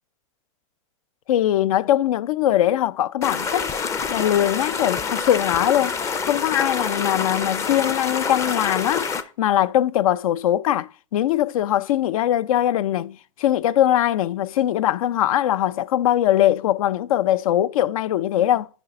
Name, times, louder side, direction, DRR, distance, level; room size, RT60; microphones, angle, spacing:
voice 1, 1.3-3.7 4.1-6.0 6.2-9.1 9.4-18.7, left 12 dB, 80° left, 0.5 m, -21 dB
sound 1, 3.2-9.2, left 5 dB, 15° left, 0.5 m, -27 dB
9.9 x 5.2 x 3.7 m
supercardioid pair, 155°, 18 cm